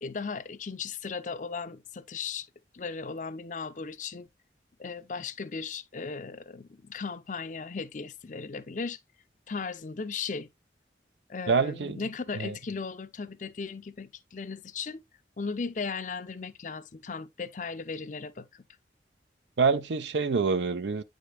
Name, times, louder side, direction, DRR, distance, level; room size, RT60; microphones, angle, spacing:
voice 1, 0.0-2.5 2.7-4.3 4.8-9.0 9.5-10.5 11.3-15.0 15.4-18.6, left 4 dB, 45° left, 0.6 m, -36 dB
voice 2, 11.5-12.0 12.3-12.6 19.6-21.0, right 4 dB, 80° right, 0.6 m, -26 dB
9.2 x 5.1 x 2.3 m
head